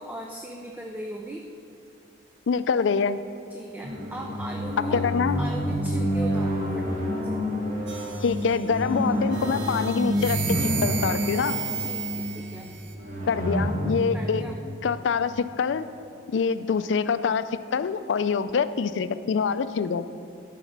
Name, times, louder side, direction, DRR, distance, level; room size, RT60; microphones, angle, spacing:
voice 1, 0.0-1.5 3.5-5.0 5.4-7.4 11.8-12.9 14.1-14.6, right 1 dB, 10° right, 1 dB, 0.4 m, -39 dB
voice 2, 2.5-3.2 4.9-5.4 8.2-11.6 13.3-14.4 14.8-15.9 16.3-17.4 17.7-20.0, left 5 dB, 75° left, 13 dB, 0.4 m, -25 dB
sound 1, 3.8-15.5, equal, 40° right, 1.6 m, -28 dB
sound 2, 7.9-8.8 9.3-12.9, right 7 dB, 65° right, 0.8 m, -34 dB
12.0 x 5.0 x 5.9 m, 2.5 s
head